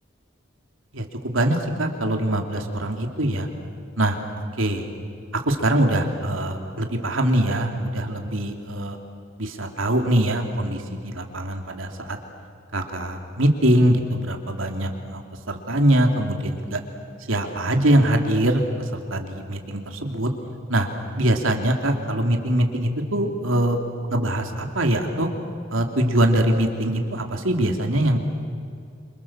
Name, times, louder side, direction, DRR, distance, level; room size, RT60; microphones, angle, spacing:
voice 1, 0.9-3.5 4.0-4.2 4.6-4.9 5.3-9.0 9.4-12.2 12.7-15.2 15.5-16.8 17.3-18.6 18.9-20.3 20.7-20.9 21.2-23.8 24.1-25.3 25.7-28.2, right 1 dB, 80° right, 3 dB, 3.1 m, -23 dB
29.0 x 26.5 x 7.5 m, 2.4 s
head